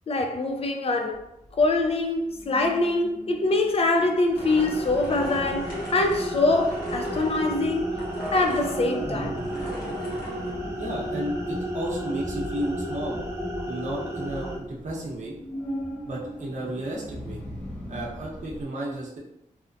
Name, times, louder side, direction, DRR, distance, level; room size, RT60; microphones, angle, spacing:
voice 1, 0.1-1.3 1.5-7.9 8.3-9.4, left 2 dB, 45° left, 0.4 m, -24 dB
sound 1, 1.1-18.6, equal, 15° left, 0.9 m, -41 dB
sound 2, 4.2-14.6, right 1 dB, 20° right, 0.5 m, -33 dB
sound 3, 4.3-10.5, equal, 85° left, 0.9 m, -40 dB
voice 2, 10.8-13.2 13.7-15.3 16.0-17.4 17.9-19.2, right 1 dB, 55° right, 0.8 m, -33 dB
2.7 x 2.1 x 2.5 m
wide cardioid pair, 90°, 14 cm